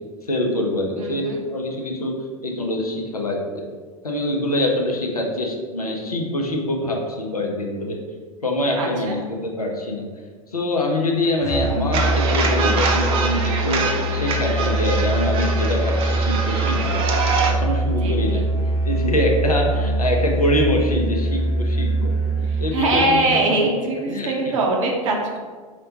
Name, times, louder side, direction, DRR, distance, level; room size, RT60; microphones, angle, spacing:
voice 1, 0.2-1.2 1.5-2.2 2.4-3.7 4.0-8.0 8.4-10.1 10.5-17.1 17.4-22.1 22.4-23.7 24.1-24.5, left 1 dB, 90° left, 1 dB, 0.5 m, -24 dB
voice 2, 1.0-1.4 8.7-9.2 18.0-18.4 22.5-25.4, right 2 dB, 60° right, 0 dB, 0.8 m, -22 dB
Musical instrument, 11.4-23.1, right 2 dB, 15° left, 0.6 m, -23 dB
sound 1, 11.9-17.5, right 4 dB, 30° right, 0.5 m, -24 dB
4.9 x 2.1 x 2.8 m, 1.5 s
figure-of-eight pair, 85°, 19 cm